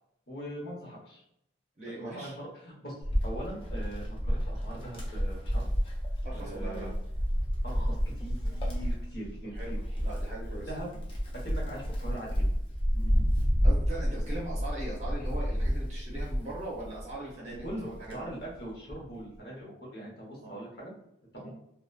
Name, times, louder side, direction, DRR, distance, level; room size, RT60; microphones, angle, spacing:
voice 1, 0.3-1.2 1.8-3.0 3.2-5.7 6.3-6.9 7.6-9.5 10.7-10.9 11.4-12.3 17.6-20.9 21.3-21.5, right 1 dB, 55° left, -3 dB, 0.9 m, -41 dB
voice 2, 1.8-2.3 6.2-6.9 9.5-11.0 12.9-13.3 13.6-18.3 20.4-20.5 21.4-21.5, right 1 dB, 35° right, -5 dB, 0.6 m, -41 dB
Wind, 3.0-17.1 17.6-19.1, equal, 30° left, 0.5 m, -30 dB
2.7 x 2.2 x 2.2 m, 0.77 s
head